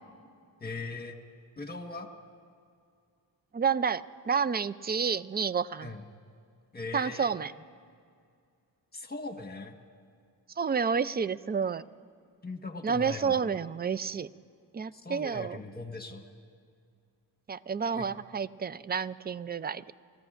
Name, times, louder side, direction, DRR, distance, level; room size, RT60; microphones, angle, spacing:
voice 1, 0.6-1.2 1.6-2.1 5.8-6.0 6.7-7.3 8.9-9.8 12.4-13.5 14.9-16.3 17.9-18.1, left 3 dB, 20° left, 4 dB, 1.4 m, -39 dB
voice 2, 3.5-5.9 6.9-7.5 10.6-11.9 12.8-14.3 14.7-15.6 17.5-19.9, right 6 dB, 25° right, 17 dB, 0.4 m, -30 dB
28.5 x 14.0 x 2.5 m, 2.2 s
cardioid pair, 55°, 43 cm